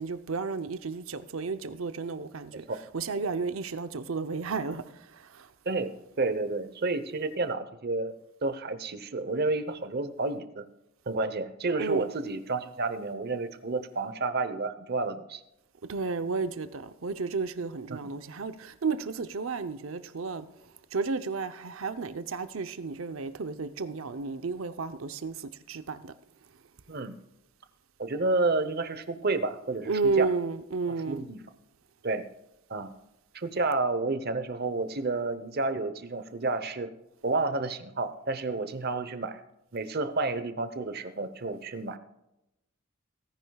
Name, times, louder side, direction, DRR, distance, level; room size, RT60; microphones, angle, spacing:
voice 1, 0.0-2.7 2.9-5.5 11.8-12.1 15.9-20.5 20.9-26.1 29.8-31.2, right 4 dB, 85° right, 0.8 m, -32 dB
voice 2, 5.6-8.1 8.4-10.7 11.1-15.4 17.9-18.0 26.9-27.2 28.0-30.3 30.9-31.4 32.0-32.3 32.7-32.9 33.3-36.9 37.2-39.4 39.7-42.0, right 3 dB, 50° right, 0.9 m, -30 dB
17.5 x 10.0 x 2.4 m
head